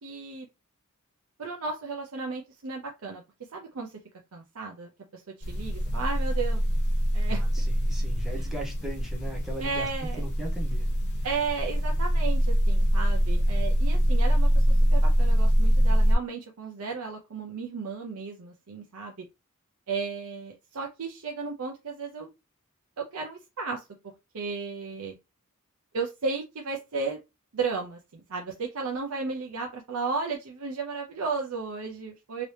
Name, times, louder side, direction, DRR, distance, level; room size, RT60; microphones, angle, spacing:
voice 1, 0.0-0.5 1.4-3.2 3.5-3.9 4.3-5.2 5.5-6.6 7.1-7.4 9.6-10.2 11.2-19.2 19.9-22.3 23.0-23.8 24.3-25.2 25.9-27.2 27.5-32.4, right 4 dB, 70° right, 1 dB, 0.6 m, -34 dB
sound 1, 5.4-16.1, equal, 50° left, 1.0 m, -24 dB
voice 2, 7.3-9.9 10.2-10.9, right 1 dB, ahead, -2 dB, 0.8 m, -38 dB
2.9 x 2.8 x 3.2 m, 0.24 s
head